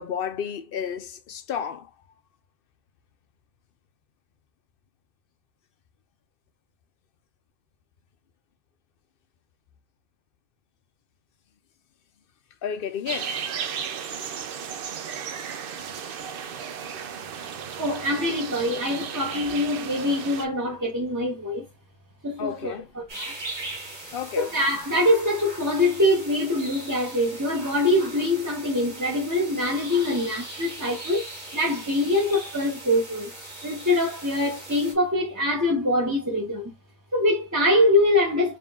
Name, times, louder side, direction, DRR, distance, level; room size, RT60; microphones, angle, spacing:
voice 1, 0.0-1.9 12.6-13.4 22.4-22.9 24.1-24.5, left 8 dB, 65° left, 0.8 m, -31 dB
sound 1, 13.1-20.5, right 7 dB, 65° right, 0.7 m, -34 dB
voice 2, 17.8-21.7 22.2-23.3 24.4-31.3 31.5-33.3 33.6-36.7 37.1-38.6, left 1 dB, 20° right, 1.0 m, -24 dB
sound 2, 23.1-34.9, right 2 dB, 45° right, 1.9 m, -40 dB
4.1 x 2.7 x 3.5 m
omnidirectional pair, 1.0 m